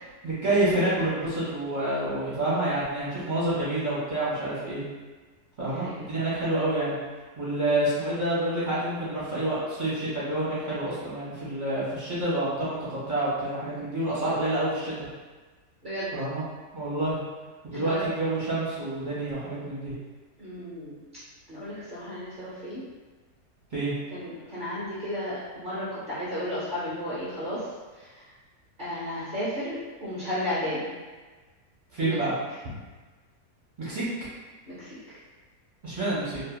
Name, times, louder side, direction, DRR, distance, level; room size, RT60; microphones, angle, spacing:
voice 1, 0.2-4.8 5.6-7.0 7.4-14.9 16.1-16.4 16.7-17.2 17.6-19.9 23.7-23.9 31.9-32.3 33.8-34.0 35.8-36.4, right 1 dB, 40° right, -10 dB, 0.8 m, -28 dB
voice 2, 5.7-6.1 15.8-16.1 17.7-18.1 20.4-21.0 21.5-22.8 24.1-28.3 28.8-30.9 32.0-32.2 34.7-35.2, left 1 dB, 60° right, -11 dB, 0.5 m, -34 dB
2.8 x 2.6 x 2.2 m, 1.3 s
omnidirectional pair, 1.7 m